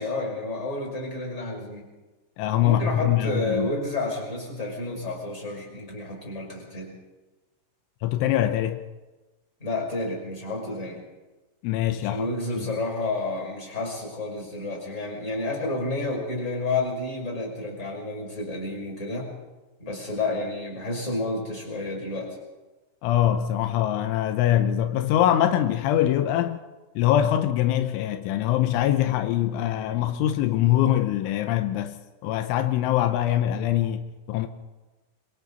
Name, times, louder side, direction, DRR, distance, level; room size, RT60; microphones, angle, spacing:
voice 1, 0.0-1.9 2.6-6.9 9.6-11.0 12.0-19.3 19.8-22.4, left 2 dB, 15° left, 5.8 m, -30 dB
voice 2, 2.4-3.7 8.0-8.8 11.6-12.3 12.6-12.7 23.0-26.6 27.0-34.5, left 12 dB, 85° left, 3.3 m, -23 dB
27.5 x 23.0 x 4.1 m
omnidirectional pair, 5.6 m